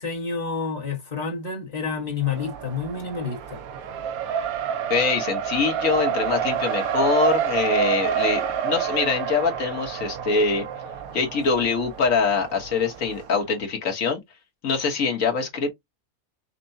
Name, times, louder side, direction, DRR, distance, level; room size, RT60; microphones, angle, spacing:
voice 1, 0.0-3.6, left 5 dB, 30° left, 1.2 m, -29 dB
Race car auto racing, 2.3-13.3, right 8 dB, 75° right, 1.1 m, -28 dB
voice 2, 4.9-10.6 11.1-14.2 14.6-15.7, left 5 dB, 60° left, 1.6 m, -24 dB
5.9 x 2.2 x 2.6 m
omnidirectional pair, 1.6 m